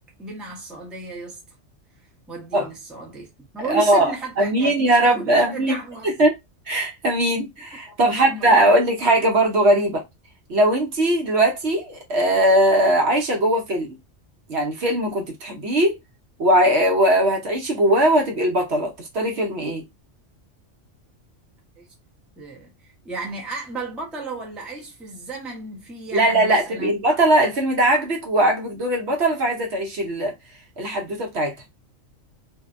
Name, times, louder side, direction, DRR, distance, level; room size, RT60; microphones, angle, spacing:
voice 1, 0.2-1.6 2.3-3.3 3.5-6.1 7.9-8.7 21.8-21.9 22.4-26.9, right 3 dB, ahead, 0.6 m, -34 dB
voice 2, 3.7-5.7 6.0-6.3 6.7-10.0 10.5-14.0 14.5-16.0 16.4-19.8 26.1-30.3 30.8-31.5, right 1 dB, 65° right, 0.9 m, -20 dB
2.6 x 2.0 x 2.4 m
omnidirectional pair, 1.3 m